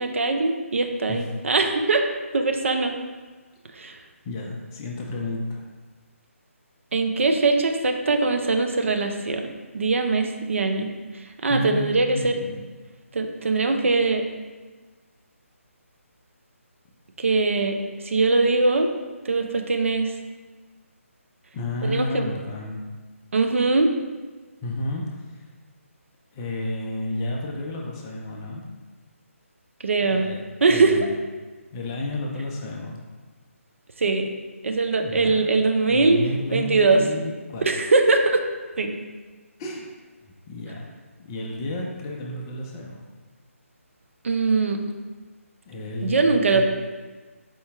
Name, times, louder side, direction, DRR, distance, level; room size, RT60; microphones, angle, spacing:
voice 1, 0.0-2.0 2.3-2.9 3.7-4.0 6.9-9.4 9.7-10.9 11.4-12.3 13.1-14.2 17.2-17.8 18.0-18.9 19.3-20.1 21.8-22.3 23.3-23.9 29.8-30.3 30.6-30.9 34.0-34.3 34.6-36.2 36.5-37.0 37.7-38.4 38.8-38.9 44.2-44.8 46.0-46.6, right 3 dB, 60° right, 5 dB, 0.5 m, -21 dB
voice 2, 4.2-5.6 11.5-12.6 21.5-22.9 24.6-25.5 26.3-28.6 30.0-30.4 30.7-31.2 31.7-33.0 35.0-35.4 35.9-37.7 39.6-39.9 40.2-40.9 41.2-43.0 45.7-46.6, left 2 dB, 15° left, -1 dB, 0.3 m, -31 dB
4.3 x 2.7 x 3.5 m, 1.3 s
figure-of-eight pair, 150°, 8 cm